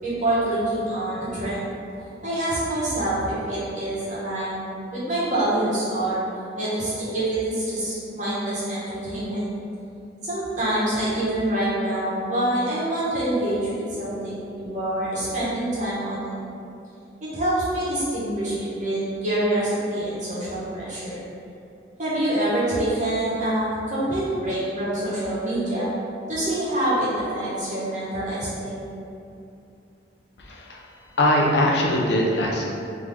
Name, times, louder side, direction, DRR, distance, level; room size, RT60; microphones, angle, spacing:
voice 1, 0.0-1.7 2.2-4.7 4.9-6.2 6.5-9.5 10.2-16.4 17.3-21.2 22.0-25.9 26.3-28.8, right 1 dB, 40° right, -10 dB, 1.3 m, -26 dB
voice 2, 30.4-30.8 31.2-32.6, left 1 dB, 60° left, -2 dB, 0.6 m, -21 dB
3.6 x 3.0 x 3.8 m, 2.6 s
head